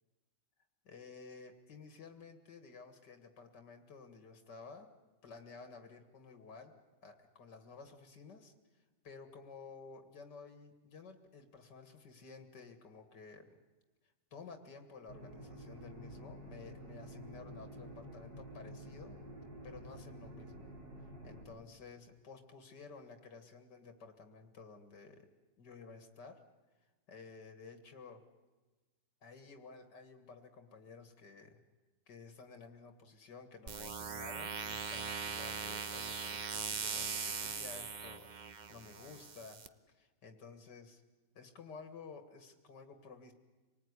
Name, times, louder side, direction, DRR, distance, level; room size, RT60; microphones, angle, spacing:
voice 1, 0.8-4.9 5.2-6.7 7.0-8.5 9.0-13.6 14.3-19.2 19.6-20.6 21.2-25.3 25.6-26.4 27.1-28.2 29.2-31.6 32.1-39.6 39.9-41.0 41.3-43.3, left 4 dB, 80° left, 8 dB, 2.4 m, -53 dB
sound 1, 15.1-21.4, right 1 dB, 90° right, 5.3 m, -50 dB
sound 2, 33.7-39.7, right 5 dB, 35° right, 0.8 m, -40 dB
26.5 x 19.0 x 9.7 m, 1.2 s
omnidirectional pair, 1.8 m